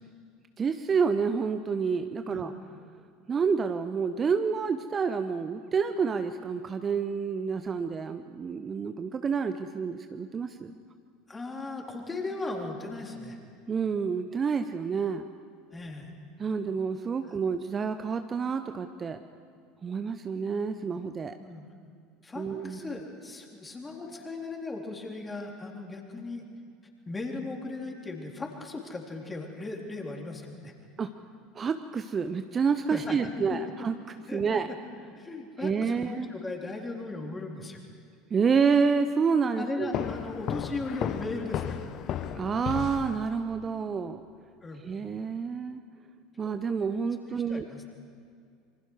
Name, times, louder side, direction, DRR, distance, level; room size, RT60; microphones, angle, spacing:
voice 1, 0.6-2.5 3.3-10.7 13.7-15.3 16.4-19.2 19.8-21.4 22.4-22.9 31.0-31.1 31.5-33.9 34.3-34.7 35.6-36.3 38.3-40.0 42.3-44.2 44.8-45.8 46.4-47.7, right 5 dB, 30° right, 9 dB, 0.8 m, -28 dB
voice 2, 11.3-13.4 15.7-16.1 17.2-17.6 21.4-21.7 22.2-26.4 27.1-30.7 32.9-33.5 34.3-34.8 35.1-37.8 39.6-42.0 44.6-44.8 47.2-47.8, left 3 dB, 15° left, 1 dB, 3.7 m, -37 dB
sound 1, 39.9-43.6, left 9 dB, 45° left, 0.9 m, -34 dB
27.0 x 24.5 x 4.8 m, 2.3 s
figure-of-eight pair, 70°, 0 cm